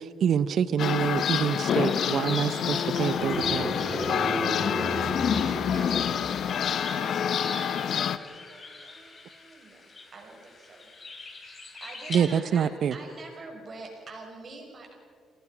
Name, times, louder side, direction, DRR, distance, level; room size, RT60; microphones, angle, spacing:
voice 1, 0.0-3.7 12.1-12.9, right 8 dB, 65° right, 15 dB, 0.8 m, -26 dB
sound 1, 0.8-8.2, left 8 dB, 65° left, 0.8 m, -27 dB
sound 2, 1.2-12.2, left 3 dB, 35° left, 3.9 m, -43 dB
sound 3, 3.1-6.7, equal, 5° right, 4.2 m, -34 dB
voice 2, 4.7-6.3 6.8-9.8 10.1-10.9 11.2-14.9, right 3 dB, 45° right, 1 dB, 6.8 m, -45 dB
27.5 x 18.5 x 6.1 m, 2.1 s
cardioid pair, 90°, 0 cm